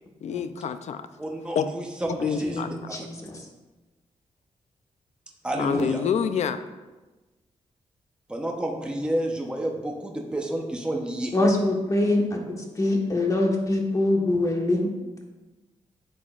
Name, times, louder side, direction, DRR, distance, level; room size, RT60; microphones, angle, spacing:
voice 1, 0.2-1.1 1.5-1.7 2.2-2.7 5.6-6.6, left 7 dB, 70° left, 11 dB, 0.5 m, -27 dB
voice 2, 1.2-2.6 2.9-3.1 5.4-6.1 8.3-11.4, right 1 dB, 10° right, 0 dB, 0.9 m, -30 dB
voice 3, 2.4-3.5 11.3-14.9, left 2 dB, 25° left, 0 dB, 1.3 m, -24 dB
11.0 x 7.4 x 2.5 m, 1.2 s
wide cardioid pair, 130°, 12 cm